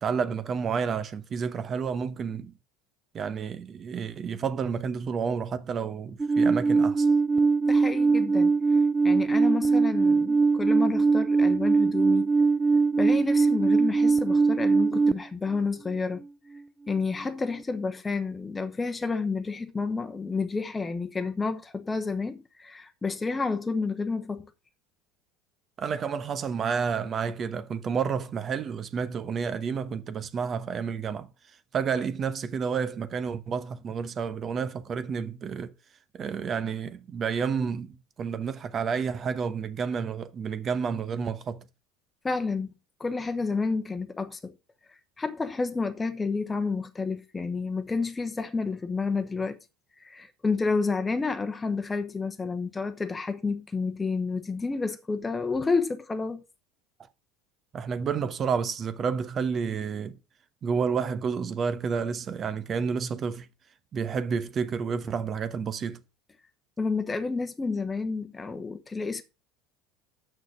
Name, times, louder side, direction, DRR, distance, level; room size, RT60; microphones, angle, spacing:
voice 1, 0.0-2.5 3.1-7.1 25.8-31.3 31.7-35.7 36.1-41.6 57.7-60.2 60.6-63.5 63.9-66.0, right 6 dB, 35° right, 1.0 m, -30 dB
Alarm, 6.2-15.1, right 4 dB, 15° right, 0.5 m, -21 dB
voice 2, 7.7-8.8 9.0-12.3 13.0-16.2 16.9-24.5 42.2-42.7 43.0-44.5 45.2-49.6 50.0-56.4 66.8-69.2, left 4 dB, 20° left, 1.0 m, -30 dB
6.8 x 6.3 x 6.0 m
hypercardioid pair, 75°, 0 cm